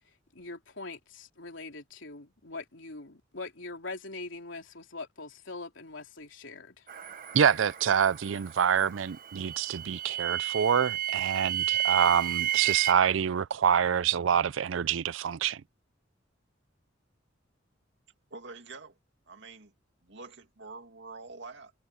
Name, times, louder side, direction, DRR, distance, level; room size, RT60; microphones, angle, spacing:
voice 1, 0.3-6.8, left 3 dB, 75° left, 3.6 m, -42 dB
sound 1, 6.9-12.9, right 12 dB, 45° right, 1.3 m, -32 dB
voice 2, 7.3-15.6, right 8 dB, 80° right, 0.4 m, -26 dB
voice 3, 18.3-19.0 19.3-19.7 20.0-21.7, right 3 dB, 65° right, 2.4 m, -46 dB
head